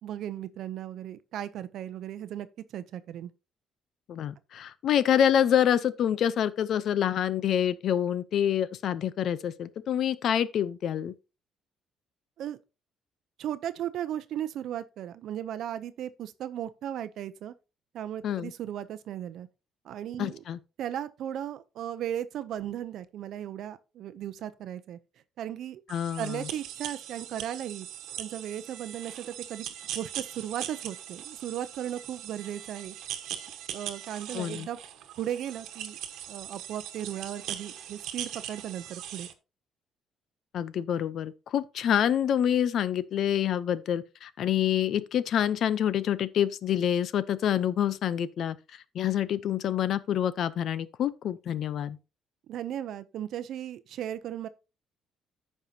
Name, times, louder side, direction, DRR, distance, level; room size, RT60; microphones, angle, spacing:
voice 1, 0.0-2.5 2.7-3.3 12.4-12.6 13.4-17.5 17.9-19.5 19.8-20.4 20.8-25.0 25.4-25.8 26.2-27.9 28.2-29.7 29.9-32.9 33.7-34.8 35.2-36.0 36.3-39.3 52.5-54.5, right 11 dB, 65° right, 0.6 m, -36 dB
voice 2, 4.1-11.1 18.2-18.5 20.2-20.6 25.9-26.4 34.3-34.7 40.5-48.6 48.9-52.0, left 9 dB, 55° left, 0.6 m, -27 dB
sound 1, 25.9-39.3, right 10 dB, 80° right, 1.2 m, -40 dB
14.0 x 5.5 x 2.8 m
cardioid pair, 155°, 0 cm